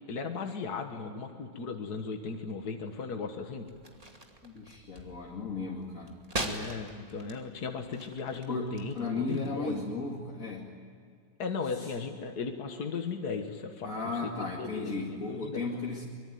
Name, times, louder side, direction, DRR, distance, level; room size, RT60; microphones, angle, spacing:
voice 1, 0.1-3.7 6.4-9.9 11.4-14.3 14.6-15.6, left 5 dB, 70° left, 4 dB, 2.1 m, -37 dB
sound 1, 3.6-9.5, right 1 dB, 20° right, 2.6 m, -42 dB
voice 2, 4.4-6.2 8.5-10.8 11.8-11.9 13.8-16.1, left 3 dB, 55° left, -2 dB, 2.7 m, -35 dB
24.5 x 23.0 x 9.4 m, 2.2 s
omnidirectional pair, 1.7 m